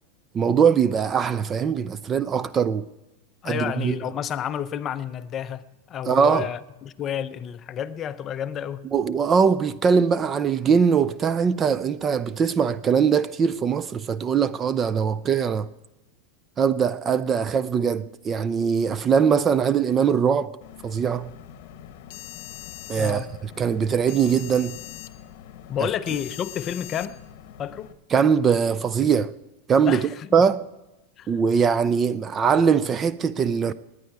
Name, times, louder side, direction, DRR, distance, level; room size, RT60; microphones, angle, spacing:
voice 1, 0.3-2.9 3.4-4.0 6.1-6.5 8.9-15.7 16.6-20.5 20.8-21.3 22.9-24.8 28.1-29.3 29.7-30.0 30.3-30.6 31.3-33.7, right 6 dB, 20° right, 0.3 m, -21 dB
voice 2, 3.4-8.9 23.0-23.3 25.7-27.2 27.6-27.9 29.8-30.3 31.2-31.3, left 9 dB, 30° left, 0.5 m, -30 dB
sound 1, 20.6-27.9, left 12 dB, 60° left, 1.0 m, -42 dB
18.5 x 9.8 x 4.7 m
supercardioid pair, 150°, 0 cm